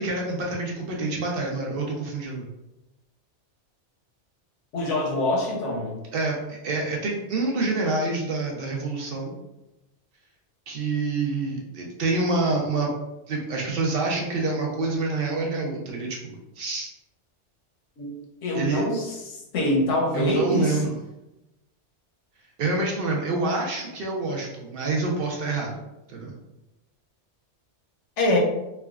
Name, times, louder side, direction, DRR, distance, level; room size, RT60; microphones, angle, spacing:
voice 1, 0.0-2.5 6.1-9.4 10.7-12.9 13.3-16.9 18.5-18.9 20.1-20.9 22.6-25.7 26.1-26.4, right 3 dB, 60° right, -1 dB, 0.7 m, -27 dB
voice 2, 4.7-6.0 18.0-18.1 18.4-20.8 28.2-28.4, left 1 dB, 85° left, -1 dB, 1.0 m, -24 dB
3.3 x 2.1 x 2.2 m, 0.95 s
omnidirectional pair, 1.2 m